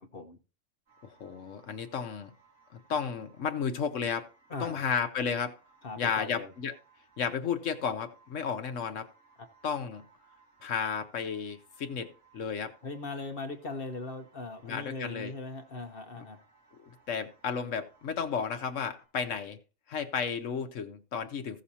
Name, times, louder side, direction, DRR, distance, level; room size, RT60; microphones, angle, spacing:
sound 1, 0.9-19.1, right 4 dB, 75° right, 6.4 m, -64 dB
voice 1, 1.0-2.3 2.7-4.3 4.6-5.6 6.0-6.8 7.2-9.1 9.6-10.0 10.6-12.7 14.6-15.3 16.9-19.6 19.9-21.6, left 6 dB, 75° left, 1.2 m, -33 dB
voice 2, 4.5-4.9 5.8-6.5 12.8-16.4, left 3 dB, 50° left, 1.2 m, -39 dB
16.0 x 6.5 x 2.8 m
omnidirectional pair, 1.3 m